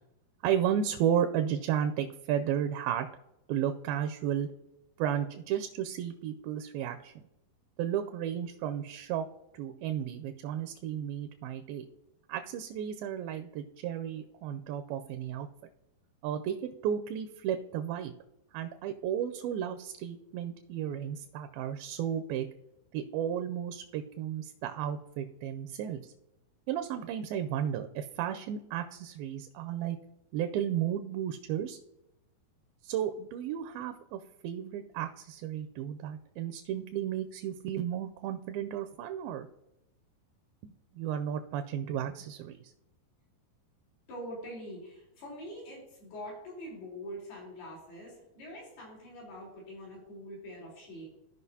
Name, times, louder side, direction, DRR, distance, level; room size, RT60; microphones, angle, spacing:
voice 1, 0.4-3.1 3.5-4.5 5.0-7.2 7.8-9.3 9.5-11.8 12.3-15.5 16.2-18.1 18.5-22.5 22.9-26.0 26.7-30.0 30.3-31.8 32.8-39.5 40.6-42.7, right 9 dB, 80° right, 7 dB, 2.2 m, -33 dB
voice 2, 44.1-51.1, equal, 80° left, -5 dB, 5.6 m, -44 dB
15.5 x 5.2 x 2.7 m, 0.89 s
omnidirectional pair, 4.4 m